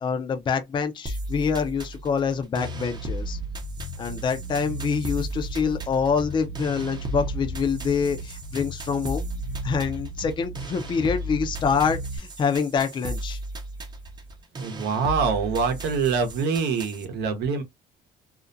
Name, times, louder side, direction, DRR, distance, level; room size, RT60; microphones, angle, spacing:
voice 1, 0.0-3.4 4.0-9.2 9.6-13.4, left 6 dB, 30° left, 0.4 m, -26 dB
sound 1, 1.1-17.1, right 1 dB, 25° right, 0.6 m, -36 dB
Bass guitar, 2.6-12.2, right 1 dB, 80° left, 0.9 m, -37 dB
voice 2, 14.6-17.6, right 5 dB, 80° right, 0.8 m, -25 dB
2.4 x 2.1 x 2.5 m
cardioid pair, 110°, 17 cm